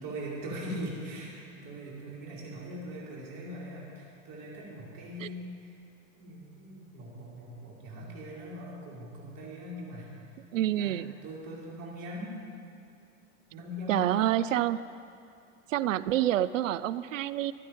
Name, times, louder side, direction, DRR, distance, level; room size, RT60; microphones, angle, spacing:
voice 1, 0.0-5.7 6.2-10.1 10.8-12.5 13.5-14.4, equal, 55° right, -5 dB, 4.9 m, -41 dB
voice 2, 10.5-11.1 13.9-14.8 15.7-17.5, right 12 dB, 90° right, 17 dB, 0.5 m, -27 dB
18.0 x 12.5 x 5.3 m, 2.4 s
hypercardioid pair, 95°, 38 cm